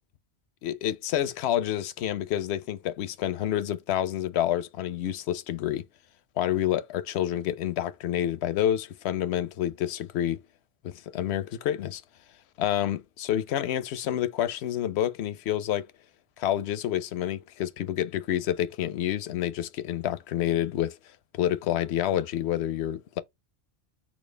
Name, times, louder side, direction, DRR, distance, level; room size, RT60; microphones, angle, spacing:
voice 1, 0.6-5.8 6.4-10.4 10.8-12.0 12.6-15.9 16.4-21.0 21.4-23.2, left 11 dB, 85° left, 0.8 m, -28 dB
4.3 x 2.9 x 3.2 m
omnidirectional pair, 1.1 m